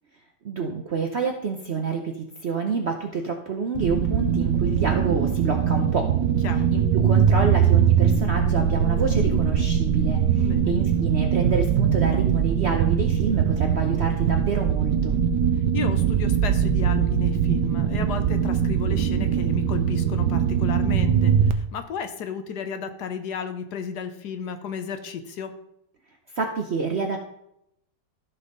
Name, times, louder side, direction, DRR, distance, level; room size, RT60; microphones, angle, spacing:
voice 1, 0.4-6.1 6.7-15.2 26.3-27.2, right 4 dB, 55° right, 3 dB, 0.8 m, -28 dB
sound 1, 3.8-21.5, right 8 dB, 70° right, 1.2 m, -21 dB
voice 2, 10.4-10.7 15.7-25.5, left 7 dB, 65° left, 8 dB, 1.3 m, -33 dB
14.0 x 5.6 x 3.9 m, 0.78 s
omnidirectional pair, 2.0 m